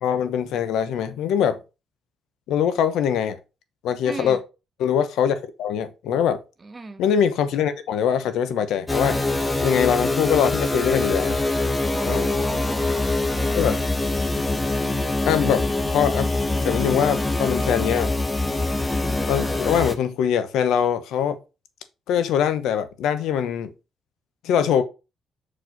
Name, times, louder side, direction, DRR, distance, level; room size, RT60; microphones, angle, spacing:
voice 1, 0.0-1.6 2.5-3.4 3.8-4.4 4.8-6.4 7.0-9.2 9.6-11.4 12.0-12.3 13.5-13.8 15.2-16.3 16.6-18.1 19.3-21.4 22.1-23.7 24.4-24.8, left 8 dB, 85° left, 0.9 m, -22 dB
voice 2, 4.0-4.4 6.6-7.0 11.8-13.9, right 3 dB, 30° right, 1.1 m, -37 dB
sound 1, 8.9-20.0, left 2 dB, 15° left, 1.0 m, -24 dB
6.2 x 4.9 x 3.9 m
cardioid pair, 90°, 0 cm